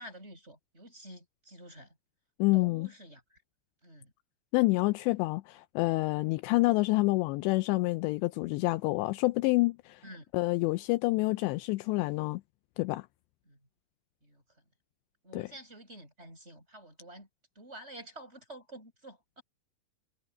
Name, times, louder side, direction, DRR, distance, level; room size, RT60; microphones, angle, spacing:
voice 1, 0.0-1.9 2.5-3.4 3.8-4.1 10.0-10.3 13.5-13.6 14.2-14.4 15.2-17.3 17.5-19.4, right 1 dB, 10° right, 7.9 m, -49 dB
voice 2, 2.4-2.9 4.5-10.0 10.3-12.4 12.8-13.1 15.3-15.5, left 22 dB, 90° left, 2.5 m, -28 dB
omnidirectional pair, 5.6 m